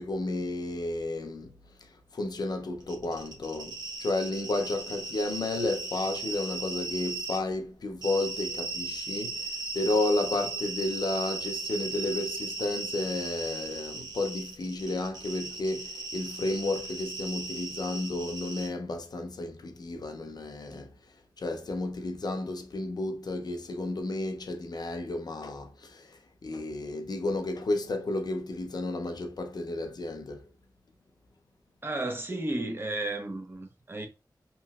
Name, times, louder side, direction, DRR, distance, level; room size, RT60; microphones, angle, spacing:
voice 1, 0.0-9.5 9.7-21.0 21.4-30.5, left 2 dB, 70° left, 0.5 m, -32 dB
sound 1, 2.8-7.4 8.0-18.7, right 3 dB, 70° right, 0.9 m, -37 dB
voice 2, 31.8-34.1, right 2 dB, 30° right, 0.7 m, -33 dB
2.9 x 2.7 x 2.3 m
wide cardioid pair, 85°, 7 cm